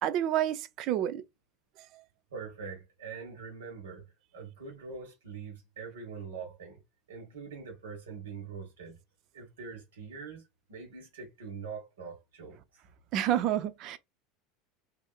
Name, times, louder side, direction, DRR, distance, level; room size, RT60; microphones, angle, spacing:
voice 1, 0.0-1.2 1.9-2.0 13.1-14.0, right 11 dB, 55° right, 0.4 m, -29 dB
voice 2, 2.3-4.1 4.3-6.8 7.1-9.0 9.3-12.8, right 5 dB, 80° right, 1.4 m, -43 dB
2.7 x 2.6 x 2.4 m
hypercardioid pair, 85°, 0 cm